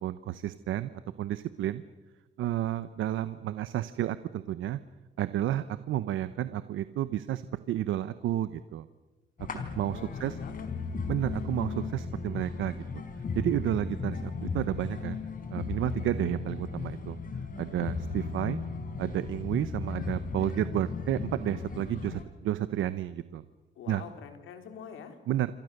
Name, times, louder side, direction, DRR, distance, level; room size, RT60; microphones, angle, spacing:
voice 1, 0.0-1.8 2.4-4.8 5.2-7.4 7.7-8.9 9.5-10.4 11.1-13.0 13.3-15.2 15.5-17.2 17.6-18.6 19.0-23.4 23.9-24.0 25.3-25.5, right 12 dB, 80° right, 13 dB, 1.0 m, -31 dB
sound 1, 9.4-22.2, left 4 dB, 45° left, 4.4 m, -36 dB
voice 2, 9.9-10.7 23.8-25.2, left 7 dB, 85° left, 6 dB, 3.9 m, -46 dB
27.5 x 25.5 x 6.7 m, 1.2 s
cardioid pair, 90°, 20 cm